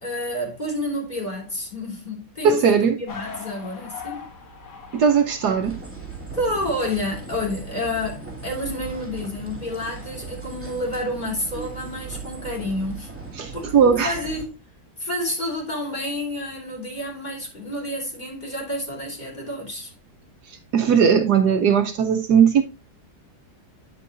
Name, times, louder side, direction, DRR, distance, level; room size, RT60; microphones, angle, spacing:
voice 1, 0.0-4.3 6.3-13.1 13.5-14.6 15.0-19.9, left 1 dB, 25° left, 3.3 m, -29 dB
voice 2, 2.4-3.0 4.9-5.8 13.4-14.1 20.7-22.6, right 7 dB, 70° right, 1.3 m, -18 dB
sound 1, 3.1-8.6, left 4 dB, 70° left, 2.5 m, -42 dB
sound 2, 5.6-14.5, right 5 dB, 5° right, 2.1 m, -38 dB
9.3 x 8.4 x 2.5 m
omnidirectional pair, 1.9 m